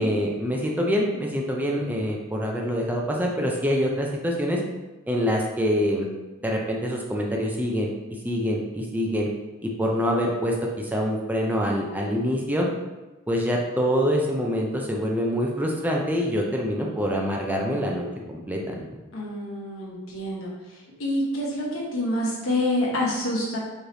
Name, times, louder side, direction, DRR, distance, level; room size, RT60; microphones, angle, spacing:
voice 1, 0.0-4.6 5.1-6.1 6.4-7.9 8.2-9.3 9.6-12.7 13.3-18.9, equal, 10° right, -1 dB, 0.5 m, -25 dB
voice 2, 19.1-20.5 21.0-23.6, left 1 dB, 85° left, -4 dB, 1.2 m, -27 dB
4.8 x 3.1 x 2.7 m, 1.1 s
head